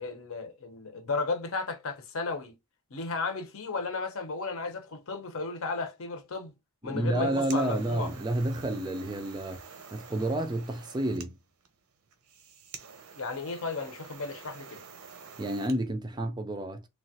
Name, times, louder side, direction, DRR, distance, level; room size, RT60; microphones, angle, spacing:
voice 1, 0.0-2.5 2.9-6.5 6.8-8.1 13.2-14.8, left 3 dB, 70° left, 0.7 m, -34 dB
voice 2, 6.8-9.6 9.9-11.4 15.4-16.8, right 1 dB, 20° right, 0.3 m, -30 dB
sound 1, 7.0-15.8, right 6 dB, 85° right, 0.7 m, -48 dB
3.1 x 2.2 x 2.7 m
head